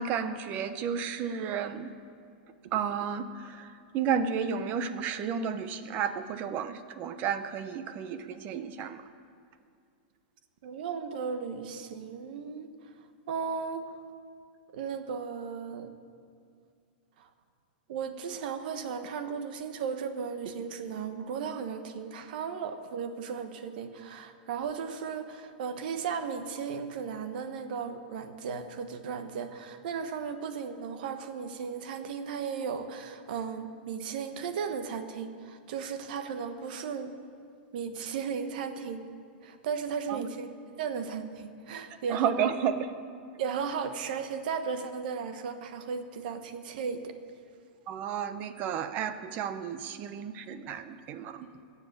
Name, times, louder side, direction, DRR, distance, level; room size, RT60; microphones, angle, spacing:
voice 1, 0.0-1.9 2.7-9.0 40.1-40.2 42.1-42.8 47.9-51.5, right 7 dB, 35° right, 11 dB, 0.8 m, -32 dB
voice 2, 10.6-12.7 13.3-13.8 14.7-15.9 17.2-17.3 17.9-37.2 37.7-39.0 39.4-40.5 40.8-42.5 43.4-47.1, right 6 dB, 60° right, 8 dB, 1.2 m, -35 dB
22.0 x 7.4 x 6.8 m, 2.3 s
supercardioid pair, 155°, 5 cm